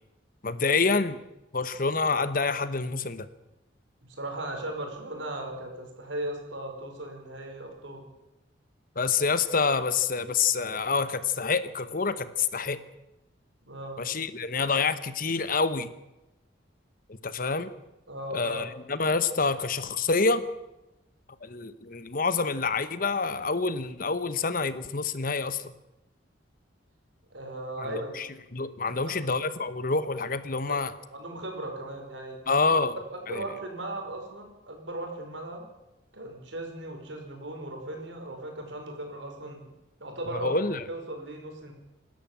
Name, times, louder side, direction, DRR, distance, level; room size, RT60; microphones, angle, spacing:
voice 1, 0.4-1.2 1.5-3.3 9.0-12.8 14.0-15.9 17.2-17.7 18.3-20.4 21.4-25.7 27.8-30.9 32.5-32.9 33.3-33.4 40.3-40.8, left 4 dB, 50° left, 13 dB, 1.1 m, -27 dB
voice 2, 4.1-8.1 13.6-14.0 18.1-18.6 27.3-28.1 28.9-29.0 30.7-32.4 33.1-35.7 36.1-39.7 40.0-40.5 40.9-41.7, right 1 dB, 80° right, 3 dB, 5.4 m, -37 dB
27.0 x 13.0 x 7.5 m, 0.96 s
head